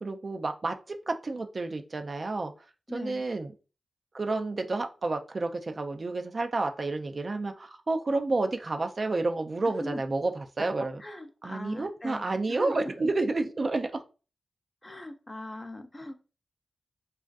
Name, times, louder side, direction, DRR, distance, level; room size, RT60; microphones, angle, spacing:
voice 1, 0.0-2.5 2.9-3.5 4.1-11.0 11.4-14.0, right 3 dB, 50° right, 5 dB, 0.3 m, -30 dB
voice 2, 2.9-3.2 9.8-10.0 11.0-12.8 14.8-16.2, left 1 dB, 25° left, 6 dB, 0.4 m, -39 dB
2.4 x 2.3 x 2.2 m, 0.33 s
cardioid pair, 65°, 0 cm